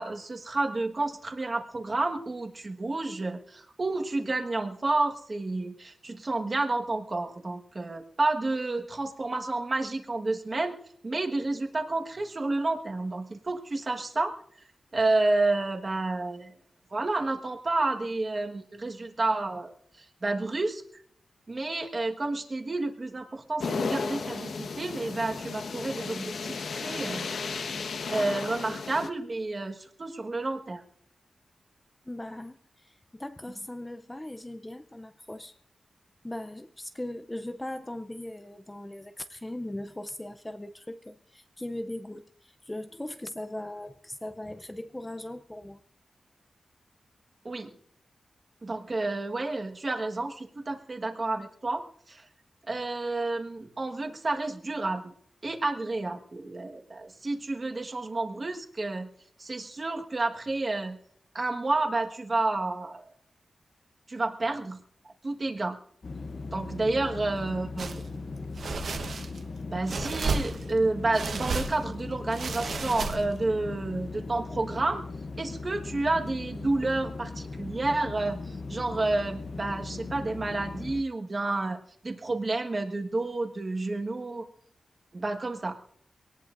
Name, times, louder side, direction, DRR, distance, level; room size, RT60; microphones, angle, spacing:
voice 1, 0.0-10.8 11.0-14.3 14.9-16.5 16.9-20.8 21.5-27.3 28.1-30.8 47.4-47.7 48.6-52.2 52.7-55.1 55.4-59.1 59.4-61.0 61.3-63.1 64.1-64.8 65.2-65.8 66.5-68.0 69.7-75.0 75.4-81.8 82.0-84.5 85.1-85.8, right 2 dB, 35° right, 3 dB, 1.4 m, -30 dB
sound 1, 23.6-29.1, left 4 dB, 80° left, 1.2 m, -34 dB
voice 2, 32.0-35.5 36.2-45.8, left 1 dB, 10° left, 9 dB, 0.5 m, -39 dB
sound 2, 66.0-81.0, left 3 dB, 45° left, 0.7 m, -39 dB
sound 3, 67.8-68.0 68.5-69.4 69.9-70.8 71.1-71.9 72.3-73.4, right 4 dB, 70° right, 1.2 m, -32 dB
23.5 x 18.5 x 2.6 m, 0.65 s
wide cardioid pair, 150°, 0 cm